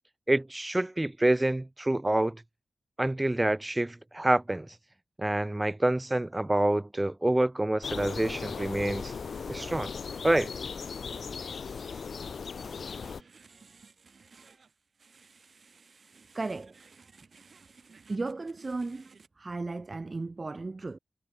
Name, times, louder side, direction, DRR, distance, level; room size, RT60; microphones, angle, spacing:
voice 1, 0.3-2.4 3.0-4.7 5.2-9.1 9.5-9.9 10.2-10.5, right 1 dB, 20° right, 1.6 m, -27 dB
sound 1, 7.8-13.2, left 5 dB, 75° left, 0.6 m, -37 dB
sound 2, 8.3-19.3, right 4 dB, 65° right, 7.2 m, -58 dB
voice 2, 16.3-16.8 18.1-19.1 19.4-21.0, right 3 dB, 45° right, 0.9 m, -35 dB
cardioid pair, 45°, 0 cm